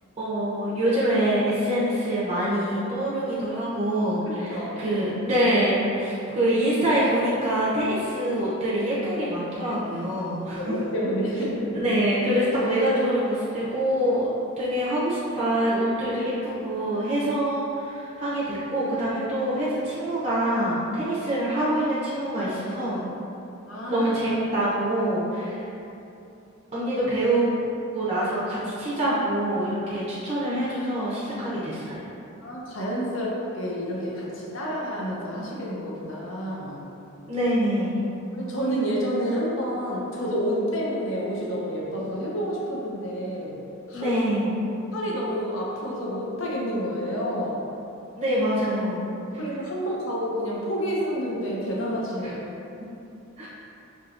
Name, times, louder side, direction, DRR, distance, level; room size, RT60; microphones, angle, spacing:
voice 1, 0.2-10.7 11.7-14.3 14.6-23.0 23.9-25.7 26.7-27.5 27.9-32.1 37.3-38.0 43.9-44.6 48.2-49.1 52.2-52.3 53.4-53.5, right 1 dB, 30° right, -10 dB, 0.6 m, -25 dB
voice 2, 4.3-4.8 10.6-11.9 12.4-12.5 23.7-24.1 32.4-36.8 38.3-43.6 43.9-44.2 44.9-47.6 49.4-52.4, equal, 65° left, -4 dB, 0.6 m, -29 dB
4.7 x 2.9 x 2.5 m, 2.8 s
head